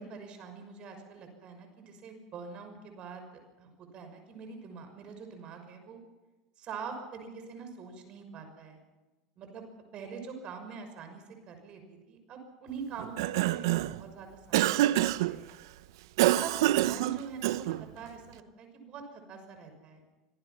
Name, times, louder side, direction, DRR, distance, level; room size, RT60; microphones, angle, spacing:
voice 1, 0.0-3.3 3.6-6.0 6.6-8.8 9.4-9.7 9.9-15.5 16.2-20.0, right 5 dB, 45° right, 6 dB, 6.2 m, -44 dB
Cough, 13.0-14.0 14.5-15.3 16.2-17.8, right 15 dB, 80° right, 0.7 m, -26 dB
25.5 x 18.5 x 5.9 m, 1.2 s
supercardioid pair, 100°, 2 cm